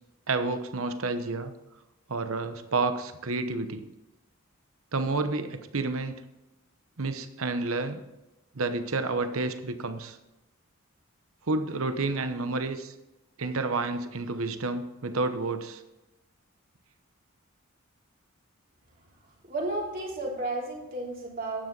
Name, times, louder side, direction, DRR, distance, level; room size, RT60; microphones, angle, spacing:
voice 1, 0.3-1.5 2.1-3.8 4.9-6.2 7.0-8.0 8.5-10.2 11.5-12.9 13.4-15.8, right 3 dB, 80° right, 9 dB, 1.0 m, -30 dB
voice 2, 19.5-21.7, right 2 dB, 40° right, -2 dB, 3.2 m, -33 dB
11.5 x 9.6 x 4.0 m, 0.96 s
head